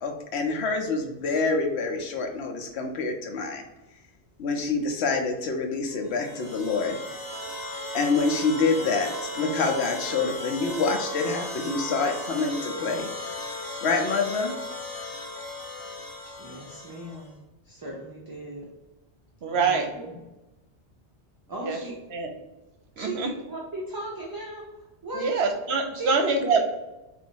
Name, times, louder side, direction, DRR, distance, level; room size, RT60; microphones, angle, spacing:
voice 1, 0.0-3.6 4.4-7.0 7.9-13.1 13.8-14.6, left 4 dB, 75° left, 3 dB, 1.0 m, -26 dB
sound 1, 6.0-17.3, left 1 dB, 25° left, 0.5 m, -36 dB
voice 2, 16.4-17.3 17.6-18.7 19.5-20.1 21.5-22.0 23.0-24.7 25.0-25.3 26.0-26.1 26.5-26.6, right 1 dB, 25° right, -4 dB, 0.6 m, -37 dB
voice 3, 19.4-19.9 21.7-21.8 22.1-22.3 23.0-23.3 25.1-26.6, right 4 dB, 75° right, 4 dB, 0.9 m, -24 dB
3.9 x 2.7 x 4.5 m, 1.0 s
omnidirectional pair, 1.1 m